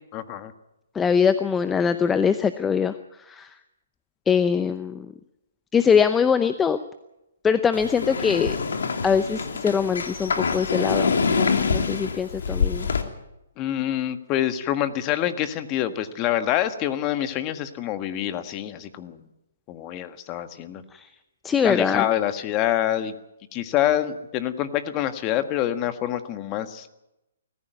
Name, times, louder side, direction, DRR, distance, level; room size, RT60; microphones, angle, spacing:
voice 1, 0.1-0.5 13.6-19.2 19.7-20.8 21.6-23.1 23.5-26.9, left 12 dB, 30° left, 10 dB, 1.6 m, -26 dB
voice 2, 0.9-3.5 4.3-5.1 5.7-6.8 7.4-8.6 9.0-12.9 20.9-21.1 21.4-22.1, left 6 dB, 10° left, 11 dB, 0.7 m, -22 dB
sound 1, 7.7-13.0, left 5 dB, 75° left, 2.5 m, -25 dB
20.5 x 15.0 x 9.4 m, 0.92 s
hypercardioid pair, 140°, 0 cm